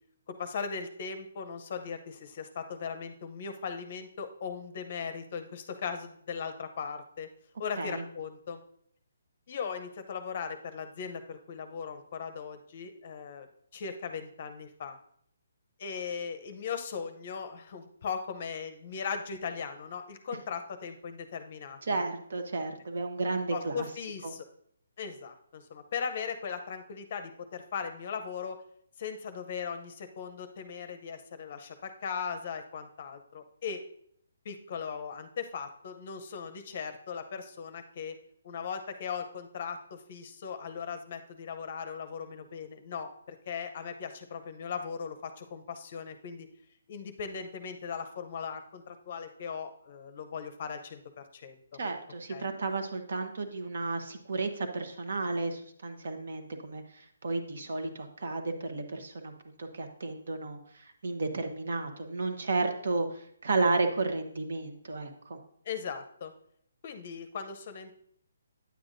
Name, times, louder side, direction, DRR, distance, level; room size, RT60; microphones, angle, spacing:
voice 1, 0.3-7.3 7.6-8.6 9.5-13.5 13.7-15.0 15.8-22.0 23.5-24.4 25.0-28.6 29.0-33.8 34.4-38.2 38.4-46.5 46.9-51.6 52.3-52.5 65.6-66.3 66.8-67.9, left 6 dB, 35° left, 8 dB, 0.6 m, -38 dB
voice 2, 21.8-23.9 24.2-24.3 51.8-59.3 59.6-65.4, right 3 dB, 55° right, 6 dB, 1.0 m, -33 dB
9.3 x 8.1 x 2.6 m, 0.66 s
hypercardioid pair, 170°, 0 cm